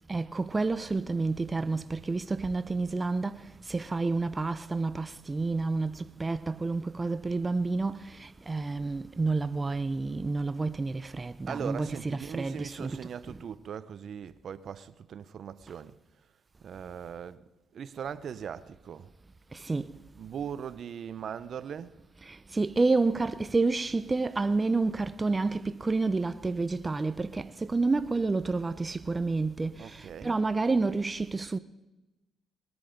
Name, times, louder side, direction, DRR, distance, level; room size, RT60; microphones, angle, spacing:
voice 1, 0.1-3.4 3.7-13.0 13.3-13.4 19.6-19.9 22.3-31.6, right 3 dB, 25° right, 0.5 m, -29 dB
voice 2, 11.5-15.9 16.6-17.4 17.7-19.1 20.1-22.0 29.8-30.4, right 8 dB, 60° right, 0.7 m, -39 dB
20.5 x 9.7 x 5.1 m
cardioid pair, 90°, 0 cm